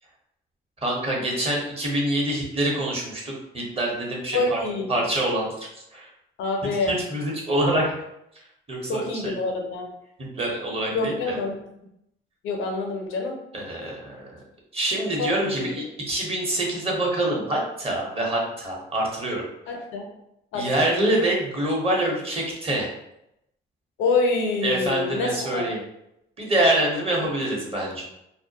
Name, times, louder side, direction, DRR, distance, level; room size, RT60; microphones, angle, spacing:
voice 1, 0.8-4.6 4.9-6.1 6.9-8.0 8.7-9.3 10.3-11.1 13.5-14.4 14.7-19.5 20.5-22.9 24.6-25.8 26.4-28.0, right 1 dB, 30° right, -2 dB, 0.9 m, -25 dB
voice 2, 4.3-5.0 6.4-7.0 8.9-9.9 10.9-11.6 12.4-13.4 15.2-15.7 19.7-20.1 20.5-21.0 24.0-25.6, left 3 dB, 85° left, 2 dB, 0.5 m, -26 dB
2.2 x 2.1 x 2.7 m, 0.80 s
cardioid pair, 90°, 20 cm